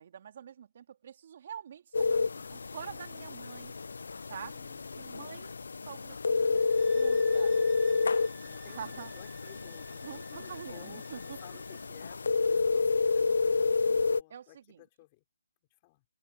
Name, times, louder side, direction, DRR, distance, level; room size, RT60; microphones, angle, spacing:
voice 1, 0.0-3.7 4.3-4.5 5.0-5.6 5.9-6.7 6.9-7.5 8.7-9.1 10.0-11.4 14.3-14.8, right 8 dB, 45° right, 2.7 m, -46 dB
sound 1, 1.9-14.2, left 4 dB, 75° left, 0.3 m, -30 dB
voice 2, 4.5-5.3 8.4-13.4 13.8-15.2 15.8-16.0, left 21 dB, 25° left, 3.5 m, -56 dB
sound 2, 6.5-11.9, right 13 dB, 15° right, 6.1 m, -56 dB
open air
hypercardioid pair, 160°, 0 cm